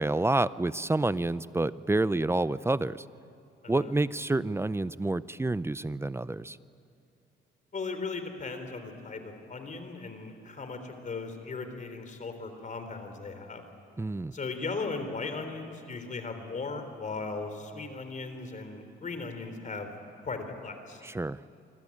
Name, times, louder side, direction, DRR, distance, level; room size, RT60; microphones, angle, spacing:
voice 1, 0.0-3.0 3.7-6.6 14.0-14.3 21.0-21.4, right 2 dB, 15° right, 16 dB, 0.6 m, -28 dB
voice 2, 7.7-13.6 14.3-19.9 20.2-21.0, left 4 dB, 40° left, 7 dB, 3.6 m, -37 dB
25.5 x 25.5 x 8.6 m, 2.6 s
cardioid pair, 90°, 20 cm